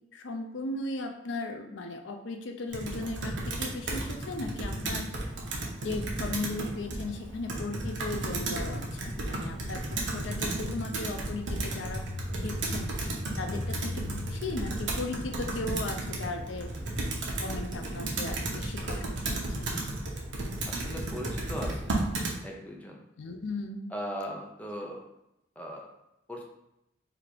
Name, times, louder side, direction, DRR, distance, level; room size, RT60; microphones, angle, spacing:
voice 1, 0.1-5.1 5.8-12.0 12.3-12.9 13.4-13.9 14.3-16.7 17.4-19.4 23.2-23.9, left 2 dB, 85° left, 4 dB, 0.5 m, -37 dB
Computer keyboard, 2.7-22.4, right 1 dB, 80° right, 0.8 m, -33 dB
voice 2, 20.7-22.0 22.4-23.0 23.9-25.1 25.6-25.9 26.3-26.4, equal, 10° left, 0 dB, 0.5 m, -39 dB
3.5 x 2.5 x 4.5 m, 0.86 s
head